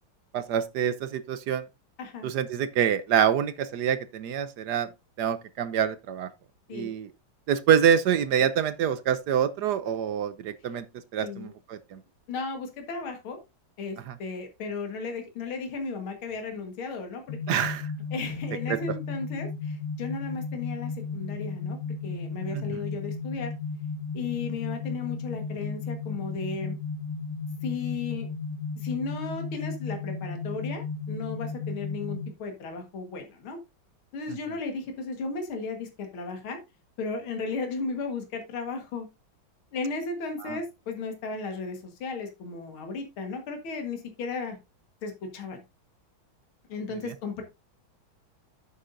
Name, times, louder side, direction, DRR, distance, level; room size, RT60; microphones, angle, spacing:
voice 1, 0.3-1.6 2.2-4.9 5.2-6.3 6.7-7.1 7.5-10.8 11.1-12.0 14.1-14.2 17.5-17.9 22.5-22.8 40.4-40.6, right 8 dB, 65° right, 1.0 m, -26 dB
voice 2, 2.0-2.3 6.7-6.9 11.2-11.5 12.3-13.4 13.8-17.6 18.1-23.5 24.1-26.7 27.6-28.3 28.8-33.6 34.1-36.6 37.0-39.1 39.7-44.6 45.0-45.6 46.7-47.4, left 4 dB, 75° left, 2.5 m, -35 dB
sound 1, 17.3-32.3, left 4 dB, 50° left, 1.2 m, -34 dB
9.8 x 8.2 x 2.6 m
omnidirectional pair, 2.3 m